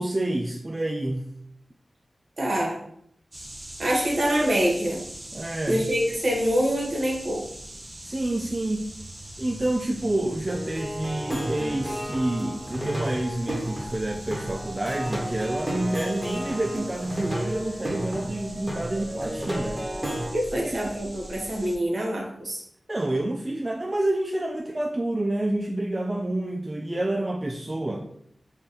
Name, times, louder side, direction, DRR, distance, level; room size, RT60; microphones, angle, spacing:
voice 1, 0.0-1.3 5.3-5.9 8.0-8.9 9.4-19.9 20.5-20.9 22.9-28.1, right 1 dB, 30° right, 1 dB, 0.4 m, -28 dB
voice 2, 2.4-2.8 3.8-5.0 5.7-7.4 20.3-22.6, equal, 65° right, -2 dB, 1.2 m, -25 dB
sound 1, 3.3-21.8, right 1 dB, 50° right, 0.8 m, -42 dB
Plucked string instrument, 10.5-20.3, right 1 dB, 15° right, 1.3 m, -32 dB
3.5 x 2.2 x 3.9 m, 0.69 s
cardioid pair, 45°, 0 cm